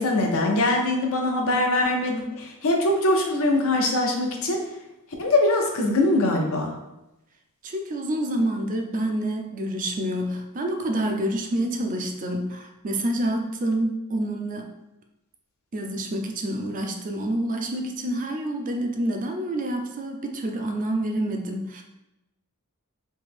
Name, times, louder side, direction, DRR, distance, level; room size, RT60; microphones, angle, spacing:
voice 1, 0.0-4.6 5.2-6.7, left 2 dB, 65° left, 2 dB, 0.7 m, -22 dB
voice 2, 7.6-14.7 15.7-21.8, right 1 dB, 35° right, 3 dB, 0.4 m, -28 dB
3.2 x 2.8 x 3.5 m, 0.93 s
head